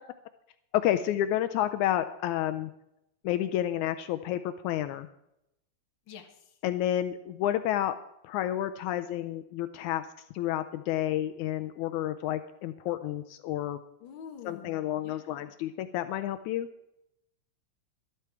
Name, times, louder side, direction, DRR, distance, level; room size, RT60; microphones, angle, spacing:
voice 1, 0.7-2.7 3.2-5.1 6.6-8.0 8.2-10.0 10.3-13.8 14.4-16.7, left 12 dB, 80° left, 10 dB, 2.0 m, -30 dB
voice 2, 6.1-6.4 14.0-15.5, left 7 dB, 45° left, 4 dB, 1.8 m, -47 dB
12.5 x 12.5 x 4.6 m, 0.82 s
omnidirectional pair, 3.5 m